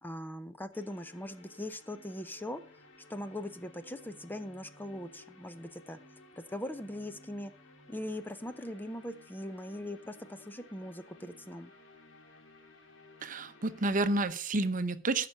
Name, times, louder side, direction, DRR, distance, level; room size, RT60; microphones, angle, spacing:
voice 1, 0.0-2.6 3.1-6.0 6.3-7.5 7.9-11.7, left 1 dB, 10° left, 10 dB, 0.6 m, -41 dB
sound 1, 0.7-14.2, left 2 dB, 85° left, 2.1 m, -57 dB
voice 2, 13.2-15.3, right 2 dB, 45° right, 12 dB, 0.8 m, -30 dB
14.5 x 5.9 x 5.3 m, 0.37 s
head